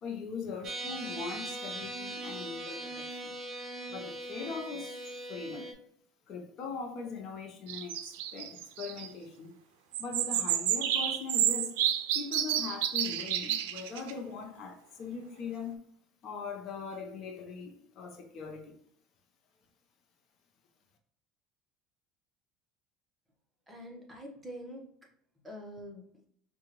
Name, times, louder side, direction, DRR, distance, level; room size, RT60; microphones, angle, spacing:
voice 1, 0.0-3.3 3.9-5.0 5.3-5.7 6.3-8.0 8.3-9.5 10.0-11.7 12.1-15.8 16.2-18.7, left 5 dB, 55° left, 0.8 m, -40 dB
sound 1, 0.6-5.7, right 2 dB, 35° right, 0.9 m, -40 dB
sound 2, 7.7-9.1 9.9-14.1, right 11 dB, 85° right, 0.4 m, -30 dB
voice 2, 23.7-24.8 25.4-26.3, equal, 15° right, 1.1 m, -45 dB
4.8 x 2.5 x 3.0 m
supercardioid pair, 110°, 0 cm